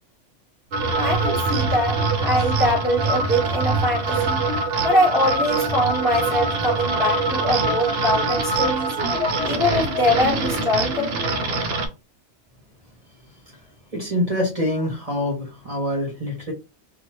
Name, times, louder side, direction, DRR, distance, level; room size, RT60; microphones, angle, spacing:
sound 1, 0.7-11.9, right 3 dB, 65° right, 0.8 m, -23 dB
voice 1, 0.9-4.5 4.8-8.9 9.4-11.6, left 1 dB, 15° left, 1.2 m, -23 dB
voice 2, 13.9-16.5, left 1 dB, 30° right, 1.2 m, -25 dB
2.7 x 2.2 x 3.0 m
omnidirectional pair, 1.2 m